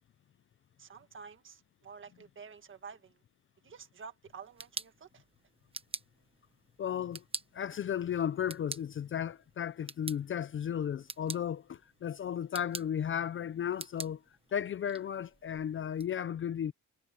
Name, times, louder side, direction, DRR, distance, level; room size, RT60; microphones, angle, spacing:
voice 1, 0.8-3.2 3.6-5.2, right 6 dB, 35° right, 1.7 m, -50 dB
sound 1, 4.3-16.1, right 4 dB, 15° right, 1.0 m, -47 dB
voice 2, 6.8-7.2 7.5-14.2 14.5-16.7, left 9 dB, 40° left, 0.5 m, -34 dB
wide cardioid pair, 175°, 33 cm